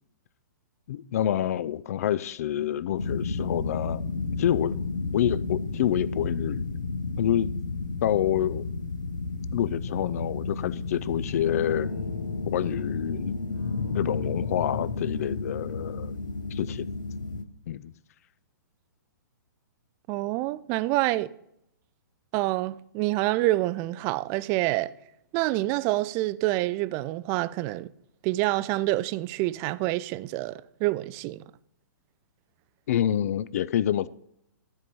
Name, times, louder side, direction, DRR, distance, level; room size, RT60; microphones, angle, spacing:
voice 1, 0.9-4.0 4.4-4.8 5.1-6.7 7.2-7.5 8.0-8.7 9.5-11.9 12.5-13.4 13.9-16.1 16.5-16.8 17.7-17.9 32.9-34.1, left 11 dB, 50° left, 0.4 m, -27 dB
sound 1, 3.0-17.4, left 3 dB, 70° left, 0.9 m, -32 dB
voice 2, 20.1-21.3 22.3-24.9 25.3-27.9 28.2-31.4, right 18 dB, 25° right, 0.3 m, -27 dB
13.0 x 4.7 x 5.4 m
figure-of-eight pair, 115°, 10 cm